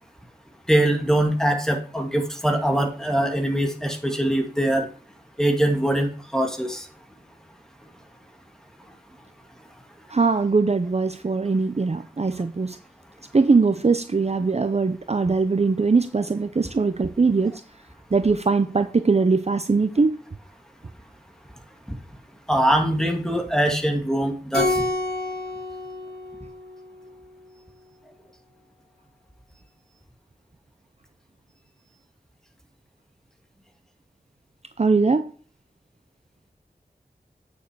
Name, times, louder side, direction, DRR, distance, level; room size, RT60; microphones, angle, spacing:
voice 1, 0.7-4.9 5.4-6.9 21.9-22.0 22.5-24.8, right 1 dB, 5° left, 3 dB, 2.2 m, -22 dB
voice 2, 10.1-12.8 13.3-17.6 18.1-20.2 34.8-35.3, right 4 dB, 40° right, 10 dB, 0.6 m, -21 dB
Keyboard (musical), 24.5-27.2, left 2 dB, 80° left, 3.6 m, -28 dB
9.1 x 6.8 x 4.7 m, 0.41 s
wide cardioid pair, 70°, 16 cm